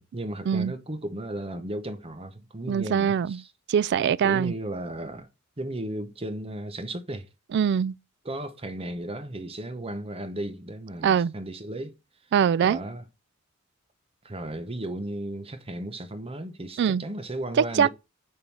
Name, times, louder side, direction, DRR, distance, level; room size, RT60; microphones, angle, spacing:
voice 1, 0.0-3.5 4.2-5.3 5.6-7.3 8.2-12.0 12.6-13.0 14.2-17.9, right 1 dB, 30° right, 0.9 m, -35 dB
voice 2, 2.7-3.4 3.7-4.5 7.5-8.0 11.0-11.3 12.3-12.8 16.8-17.0 17.6-17.9, right 7 dB, 55° right, 0.3 m, -23 dB
7.0 x 3.8 x 4.7 m
head